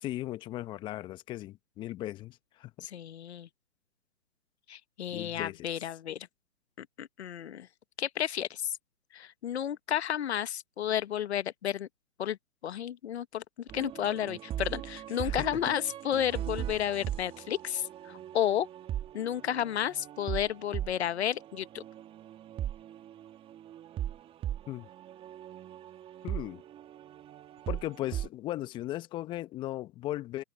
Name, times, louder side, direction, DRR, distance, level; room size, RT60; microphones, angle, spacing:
voice 1, 0.0-2.7 5.1-5.7 15.2-15.5 24.7-24.9 26.2-26.6 27.7-30.4, left 15 dB, 10° left, 1.0 m, -37 dB
voice 2, 2.8-3.5 4.7-6.3 6.8-7.7 8.0-8.8 9.1-11.9 12.2-12.4 12.6-13.4 13.7-18.7 19.1-21.8, left 10 dB, 40° left, 1.1 m, -32 dB
sound 1, 13.7-28.3, right 11 dB, 10° right, 1.8 m, -39 dB
figure-of-eight pair, 140°, 49 cm